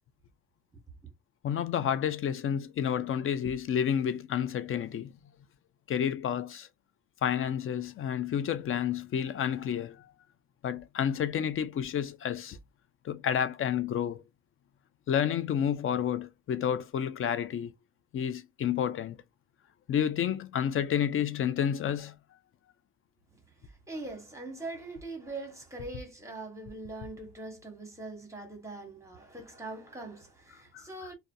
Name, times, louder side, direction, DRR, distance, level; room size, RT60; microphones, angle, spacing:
voice 1, 1.4-5.2 5.9-6.7 7.2-10.1 10.6-12.6 13.0-14.2 15.1-17.7 18.1-19.2 19.9-22.1 30.7-30.8, left 9 dB, 45° left, 0.4 m, -30 dB
voice 2, 23.3-31.1, right 2 dB, 10° right, 1.1 m, -42 dB
2.4 x 2.2 x 2.6 m
cardioid pair, 90°, 30 cm